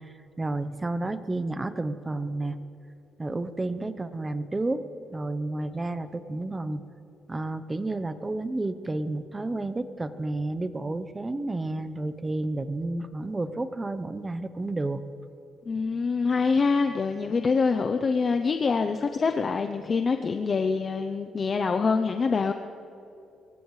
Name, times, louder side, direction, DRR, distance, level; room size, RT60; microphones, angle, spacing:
voice 1, 0.4-2.6 3.2-4.8 5.1-6.8 7.3-15.0, right 2 dB, 20° right, 12 dB, 0.8 m, -31 dB
voice 2, 15.7-22.5, left 4 dB, 40° left, 6 dB, 0.6 m, -25 dB
24.5 x 15.5 x 3.2 m, 2.8 s
cardioid pair, 90°, 0 cm